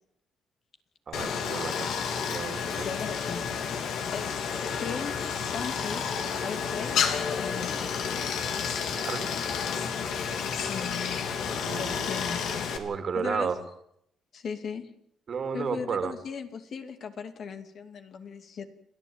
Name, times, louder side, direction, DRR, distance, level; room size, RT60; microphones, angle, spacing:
Stream, 1.1-12.8, left 6 dB, 75° left, 2.8 m, -31 dB
voice 1, 1.1-2.9 8.9-9.3 11.7-12.2 12.7-13.6 15.3-16.1, right 6 dB, 50° right, 8 dB, 2.8 m, -33 dB
voice 2, 2.8-3.5 4.1-4.4 4.7-6.0 6.3-8.0 10.6-11.2 11.8-12.4 13.2-13.5 14.3-14.9 15.5-18.7, left 6 dB, 60° left, 7 dB, 2.5 m, -37 dB
30.0 x 11.0 x 8.9 m, 0.73 s
cardioid pair, 90°, 0 cm